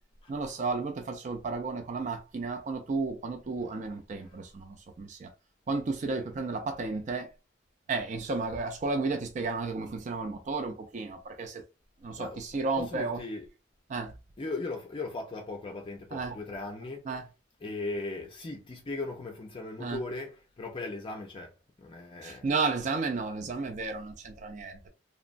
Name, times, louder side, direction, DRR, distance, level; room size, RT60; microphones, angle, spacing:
voice 1, 0.3-5.3 5.7-7.3 7.9-11.6 12.0-13.2 13.9-14.1 16.1-16.4 17.1-17.2 19.8-20.0 22.2-24.9, right 3 dB, 40° right, 0.4 m, -33 dB
voice 2, 12.8-13.5 14.4-17.1 17.6-22.5, left 2 dB, 30° left, 0.4 m, -38 dB
2.9 x 2.1 x 2.5 m
head